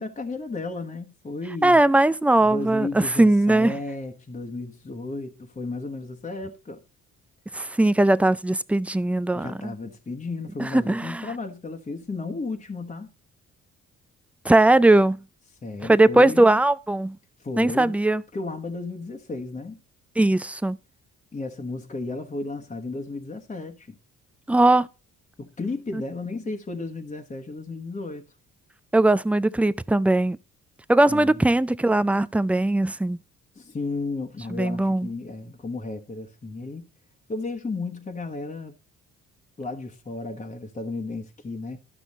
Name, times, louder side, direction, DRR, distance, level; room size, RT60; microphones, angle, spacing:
voice 1, 0.0-1.8 2.4-6.8 9.3-13.1 15.6-16.6 17.4-18.0 18.3-19.8 21.3-24.0 25.4-28.2 31.1-31.5 33.5-36.9 37.3-38.8 39.6-41.8, left 3 dB, 25° left, 1.2 m, -33 dB
voice 2, 1.6-3.7 7.5-9.7 10.6-11.3 14.4-15.2 15.9-17.2 17.6-18.2 20.2-20.8 24.5-24.9 28.9-30.4 30.9-33.2 34.5-35.1, right 2 dB, 5° right, 0.4 m, -19 dB
12.0 x 6.0 x 4.1 m
cardioid pair, 90°, 30 cm